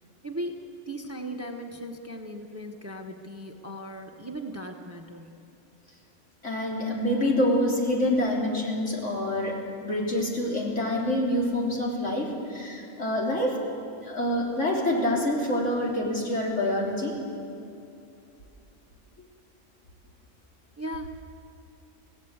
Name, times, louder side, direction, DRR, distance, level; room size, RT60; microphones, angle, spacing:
voice 1, 0.2-5.3 20.8-21.1, right 1 dB, 10° right, 4 dB, 1.1 m, -37 dB
voice 2, 6.4-13.6 14.0-17.1, left 1 dB, 70° left, -2 dB, 3.8 m, -26 dB
26.0 x 16.5 x 8.1 m, 2.7 s
omnidirectional pair, 1.3 m